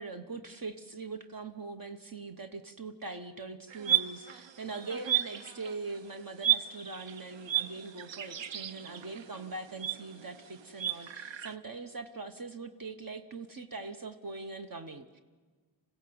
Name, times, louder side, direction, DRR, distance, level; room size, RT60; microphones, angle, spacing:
voice 1, 0.0-15.2, right 3 dB, 50° right, 7 dB, 1.1 m, -42 dB
sound 1, 3.7-6.0 6.4-11.5, right 11 dB, 80° right, 0.8 m, -33 dB
26.5 x 16.0 x 7.9 m, 1.4 s
wide cardioid pair, 100°, 44 cm